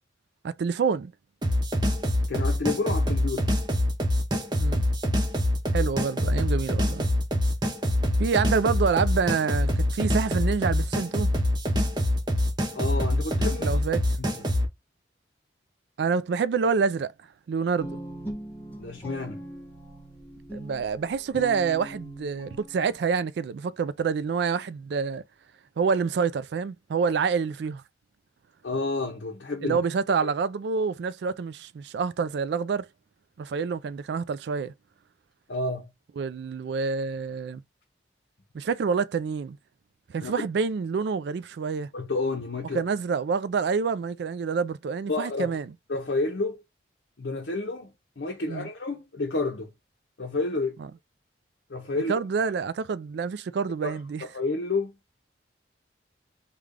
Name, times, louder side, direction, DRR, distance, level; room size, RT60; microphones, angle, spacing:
voice 1, 0.4-1.1 4.6-4.8 5.7-7.0 8.2-11.3 13.6-14.0 16.0-17.1 17.5-18.0 20.5-25.2 25.8-27.8 29.6-32.9 33.4-34.7 36.2-37.6 38.5-39.6 40.1-41.9 42.7-45.7 48.5-48.7 50.8-50.9 52.1-54.2, right 5 dB, 65° right, 0.3 m, -27 dB
sound 1, 1.4-14.7, left 1 dB, 25° right, 0.7 m, -25 dB
voice 2, 2.3-3.5 12.7-13.8 18.8-19.4 28.6-29.8 30.2-30.3 35.5-35.9 40.2-40.5 41.9-42.8 45.1-45.5 45.9-46.6 47.2-49.7 50.2-50.8 51.7-52.1 53.8-54.9, left 3 dB, 65° left, 0.7 m, -30 dB
Guitar, 17.8-23.0, right 1 dB, 10° left, 1.1 m, -40 dB
3.2 x 2.2 x 3.6 m
head